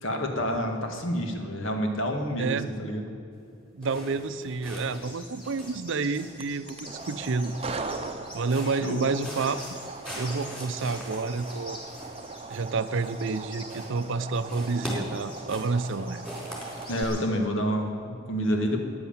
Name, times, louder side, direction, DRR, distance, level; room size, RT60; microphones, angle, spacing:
voice 1, 0.0-3.0 8.6-9.1 16.9-18.8, equal, 65° left, 3 dB, 1.9 m, -28 dB
voice 2, 2.4-2.7 3.7-7.5 8.3-9.6 10.1-11.8 12.5-16.2, right 4 dB, 65° right, 12 dB, 0.6 m, -29 dB
sound 1, 3.8-5.1 5.4-6.5 6.9-8.0 8.4-8.9 9.2-13.4 13.6-14.2 14.5-17.1, equal, 5° left, 4.1 m, -42 dB
sound 2, 4.9-17.2, left 1 dB, 25° left, 3.6 m, -47 dB
sound 3, 6.3-17.0, right 3 dB, 30° right, 0.8 m, -40 dB
14.0 x 9.8 x 7.3 m, 2.6 s
head